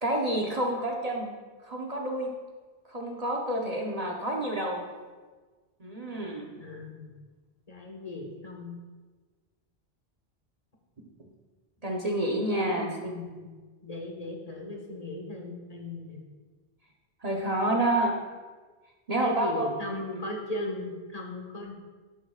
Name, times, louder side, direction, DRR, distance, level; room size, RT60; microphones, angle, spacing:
voice 1, 0.0-1.3 1.6-2.3 2.9-4.8 5.8-6.5 11.8-13.1 17.2-18.1 19.1-19.7 20.1-20.2, right 1 dB, 40° right, -1 dB, 1.0 m, -29 dB
voice 2, 6.6-7.1 7.7-8.7 12.7-13.5 13.8-16.2 19.2-21.7, left 2 dB, 35° left, 0 dB, 1.5 m, -37 dB
11.5 x 9.7 x 2.4 m, 1.4 s
omnidirectional pair, 1.1 m